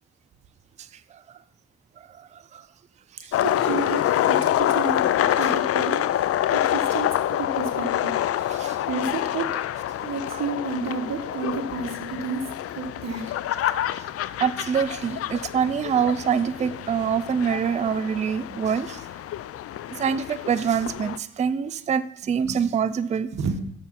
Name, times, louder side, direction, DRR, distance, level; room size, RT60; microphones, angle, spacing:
sound 1, 3.3-21.2, left 12 dB, 50° left, 0.4 m, -27 dB
voice 1, 3.4-5.0 5.4-6.1 6.5-7.1 7.4-8.1 8.9-9.5 10.0-12.4 12.8-13.2 18.5-18.6 22.4-22.6 23.3-23.6, right 4 dB, 60° right, 5 dB, 1.3 m, -30 dB
voice 2, 14.4-19.0 19.9-23.3, right 7 dB, 25° right, 14 dB, 0.4 m, -25 dB
6.9 x 6.8 x 5.8 m, 0.74 s
cardioid pair, 90°, 30 cm